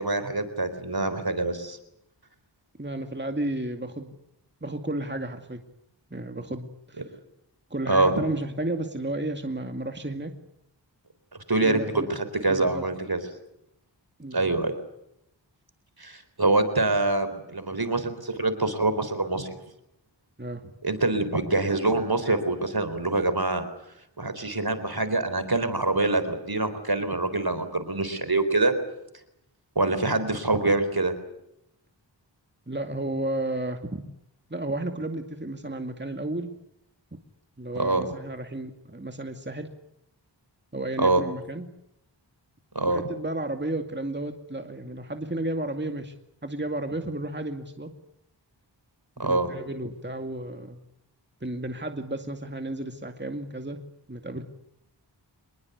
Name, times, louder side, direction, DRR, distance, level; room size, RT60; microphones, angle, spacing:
voice 1, 0.0-1.8 7.9-8.1 11.5-13.2 14.3-14.7 16.0-19.5 20.8-23.6 24.2-28.7 29.8-31.1 37.7-38.0 41.0-41.2 42.7-43.0 49.2-49.5, right 2 dB, 55° right, 11 dB, 4.2 m, -25 dB
voice 2, 2.8-4.2 4.6-5.6 6.1-7.0 7.7-10.3 11.6-12.1 12.5-12.8 14.2-14.6 20.4-20.7 32.7-34.0 34.5-36.5 37.6-39.7 40.7-41.7 42.9-46.1 46.4-47.9 49.2-50.8 51.4-53.8 54.1-54.4, right 1 dB, 25° right, 5 dB, 2.3 m, -32 dB
25.5 x 21.5 x 8.2 m, 0.82 s
wide cardioid pair, 45°, 44 cm